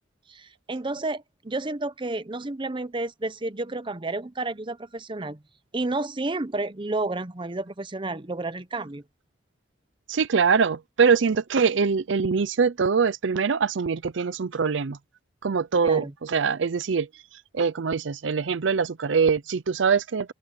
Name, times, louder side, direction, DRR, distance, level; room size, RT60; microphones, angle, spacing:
voice 1, 0.3-5.4 5.7-9.0 15.8-16.1, right 2 dB, 25° right, 0.8 m, -31 dB
voice 2, 10.1-15.0 15.4-20.3, right 5 dB, 70° right, 0.5 m, -23 dB
open air
head